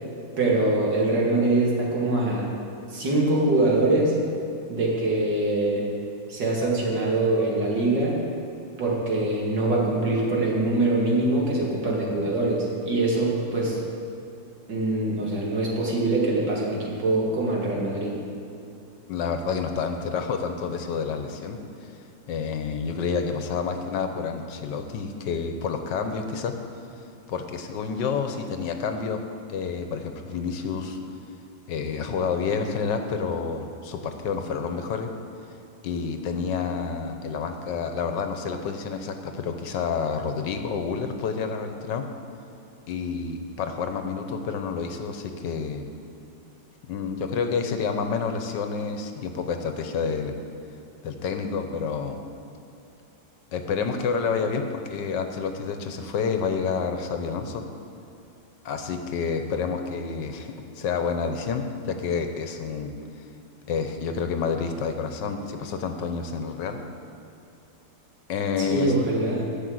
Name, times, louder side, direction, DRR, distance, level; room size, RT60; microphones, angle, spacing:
voice 1, 0.4-2.4 2.9-4.1 4.7-5.9 6.3-8.2 8.8-13.8 14.7-18.2 68.6-69.5, right 2 dB, 75° right, -3 dB, 2.8 m, -23 dB
voice 2, 19.1-21.6 22.3-26.5 27.3-29.2 29.5-31.0 31.7-35.1 35.8-42.0 42.9-45.9 46.9-50.4 51.0-52.2 53.5-57.6 58.6-62.9 63.7-66.8 68.3-68.9, left 5 dB, 75° left, 6 dB, 1.5 m, -29 dB
12.0 x 6.1 x 7.8 m, 2.8 s
omnidirectional pair, 1.9 m